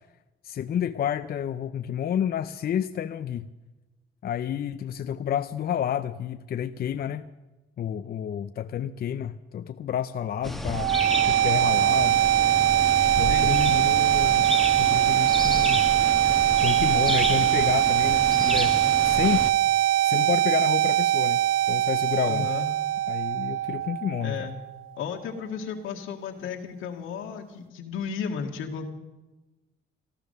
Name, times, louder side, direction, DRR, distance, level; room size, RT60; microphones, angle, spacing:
voice 1, 0.4-3.5 4.2-7.3 7.8-10.9 11.2-12.2 13.2-14.5 14.8-15.9 16.6-18.8 19.0-19.5 20.0-22.5 23.1-24.5, left 9 dB, 50° left, 10 dB, 0.5 m, -30 dB
sound 1, 10.4-19.5, left 1 dB, ahead, 1.1 m, -31 dB
sound 2, 10.7-24.7, right 13 dB, 90° right, 0.4 m, -22 dB
voice 2, 13.1-13.8 22.3-22.7 24.2-24.6 25.0-28.9, left 6 dB, 85° left, 2 dB, 2.0 m, -33 dB
14.5 x 12.0 x 6.6 m, 1.1 s
cardioid pair, 90°, 20 cm